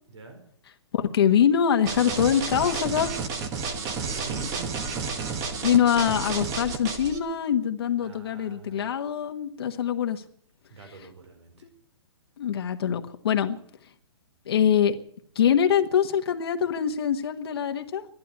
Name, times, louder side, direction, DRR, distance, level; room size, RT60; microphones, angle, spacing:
voice 1, 0.1-0.4 3.7-4.7 8.0-8.9 10.7-11.7, right 4 dB, 75° right, 6 dB, 4.8 m, -45 dB
voice 2, 0.9-3.2 5.6-10.2 12.4-13.6 14.5-14.9 15.3-18.1, left 8 dB, 60° left, 6 dB, 1.3 m, -24 dB
sound 1, 1.9-7.2, right 5 dB, 20° right, 1.3 m, -31 dB
13.5 x 12.0 x 8.2 m, 0.63 s
hypercardioid pair, 155°, 15 cm